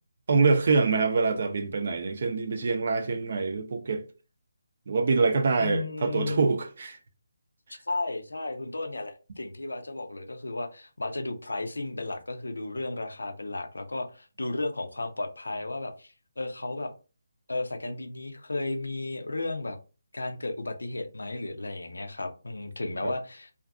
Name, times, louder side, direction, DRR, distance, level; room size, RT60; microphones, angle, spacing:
voice 1, 0.3-4.0 4.9-7.0 23.0-23.1, right 4 dB, 50° right, 0.5 m, -25 dB
voice 2, 5.6-6.4 7.7-16.9 17.5-19.8 20.1-23.5, left 2 dB, 85° left, 0.5 m, -34 dB
2.5 x 2.4 x 2.3 m
figure-of-eight pair, 155°, 0 cm